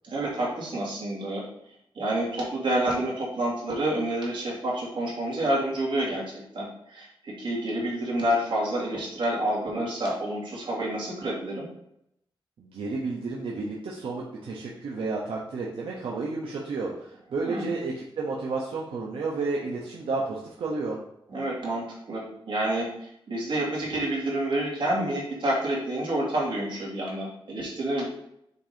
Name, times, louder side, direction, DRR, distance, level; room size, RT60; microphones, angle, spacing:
voice 1, 0.0-1.4 2.0-11.7 17.4-17.7 21.3-28.0, right 1 dB, 65° right, -5 dB, 2.4 m, -28 dB
voice 2, 12.6-21.0, right 3 dB, 90° right, -4 dB, 0.9 m, -31 dB
6.5 x 2.8 x 5.1 m, 0.78 s
wide cardioid pair, 180°, 9 cm